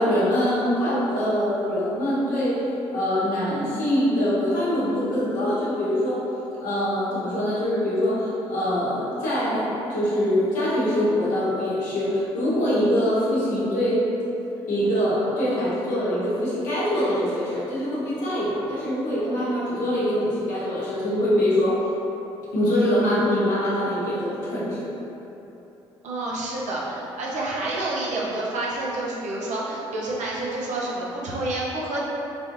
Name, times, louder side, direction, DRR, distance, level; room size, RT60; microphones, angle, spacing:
voice 1, 0.0-2.6 2.9-6.2 6.6-14.0 14.7-21.8 22.5-24.9, equal, 70° left, -9 dB, 1.0 m, -23 dB
voice 2, 26.0-32.0, right 2 dB, 60° right, -5 dB, 0.7 m, -28 dB
3.4 x 2.5 x 2.6 m, 2.9 s
hypercardioid pair, 50°, 14 cm